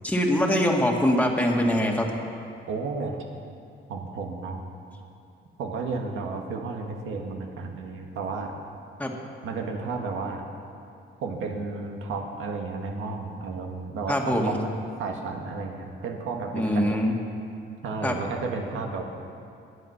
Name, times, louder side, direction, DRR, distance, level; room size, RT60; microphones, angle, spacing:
voice 1, 0.0-2.1 9.0-9.1 14.1-14.6 16.5-17.1 18.0-18.2, equal, 5° left, 0 dB, 2.0 m, -23 dB
voice 2, 2.7-3.2 3.9-4.6 5.6-8.5 9.4-10.4 11.2-14.6 15.0-16.9 17.8-19.0, right 4 dB, 85° right, 2 dB, 1.8 m, -32 dB
21.0 x 8.4 x 5.8 m, 2.5 s
cardioid pair, 90°, 20 cm